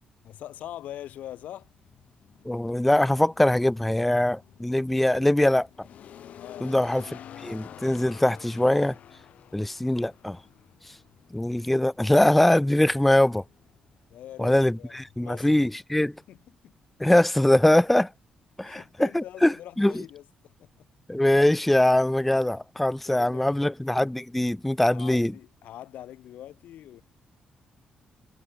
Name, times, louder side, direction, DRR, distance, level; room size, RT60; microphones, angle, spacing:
voice 1, 0.2-1.7 6.4-6.7 14.1-15.5 16.3-16.7 18.6-20.9 23.0-23.7 24.9-27.0, left 12 dB, 90° left, 3.3 m, -43 dB
sound 1, 0.5-15.0, left 10 dB, 65° left, 2.6 m, -50 dB
voice 2, 2.5-5.7 6.6-8.9 9.5-10.4 11.3-13.4 14.4-16.1 17.0-18.1 18.6-19.9 21.1-25.3, left 1 dB, 5° left, 0.4 m, -22 dB
cardioid pair, 155°, 3 cm